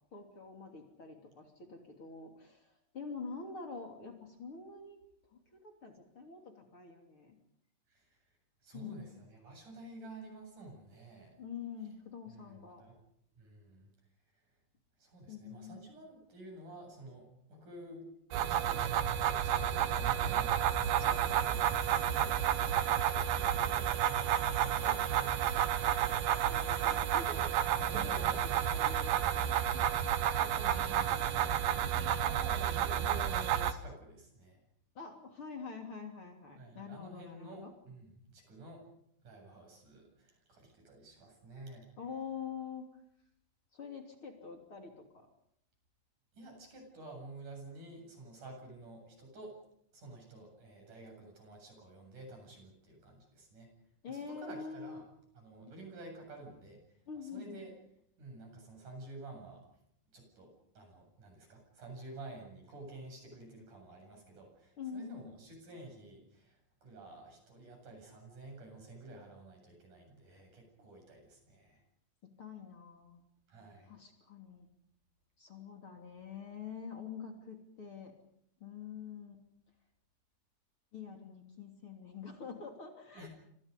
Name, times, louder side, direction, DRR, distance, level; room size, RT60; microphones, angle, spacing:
voice 1, 0.1-5.0 5.3-7.4 8.7-9.2 11.4-12.8 15.3-15.8 24.8-25.0 26.4-27.5 27.9-29.7 30.4-31.5 35.0-37.7 42.0-42.9 43.7-45.3 54.0-55.0 57.1-57.6 64.8-65.3 72.4-73.2 73.9-74.7 75.4-78.1 78.6-79.4 80.9-83.3, left 5 dB, 40° left, 3 dB, 3.7 m, -46 dB
voice 2, 7.9-8.2 8.6-11.3 12.3-13.0 13.4-13.9 14.3-14.4 15.0-18.1 18.4-19.0 19.3-26.2 27.8-28.6 32.3-34.6 36.6-38.8 39.2-41.9 46.3-49.6 49.9-53.7 54.1-55.0 55.3-57.7 58.2-59.6 60.1-71.8 73.5-73.9 83.1-83.3, right 2 dB, 65° right, 3 dB, 9.4 m, -51 dB
sound 1, 18.3-33.7, right 10 dB, 85° right, 2.9 m, -31 dB
28.5 x 26.5 x 5.4 m, 0.72 s
omnidirectional pair, 4.0 m